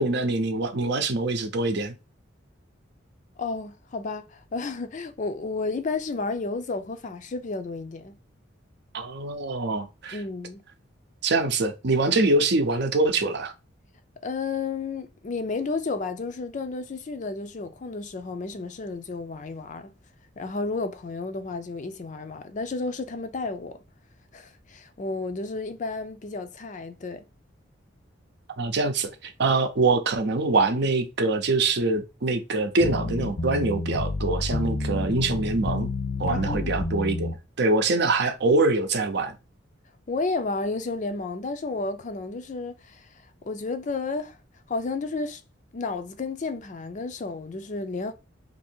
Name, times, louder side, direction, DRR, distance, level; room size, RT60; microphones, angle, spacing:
voice 1, 0.0-2.0 8.9-10.2 11.2-13.5 28.6-35.9 36.2-39.4, right 3 dB, 60° right, 0.6 m, -24 dB
voice 2, 3.4-8.2 10.1-10.6 14.2-19.9 20.4-23.8 24.3-27.2 36.3-36.7 40.1-44.4 44.7-45.4 45.7-48.1, left 3 dB, 40° left, 0.4 m, -32 dB
sound 1, 32.8-37.3, left 2 dB, 70° left, 0.8 m, -29 dB
2.8 x 2.7 x 4.3 m
head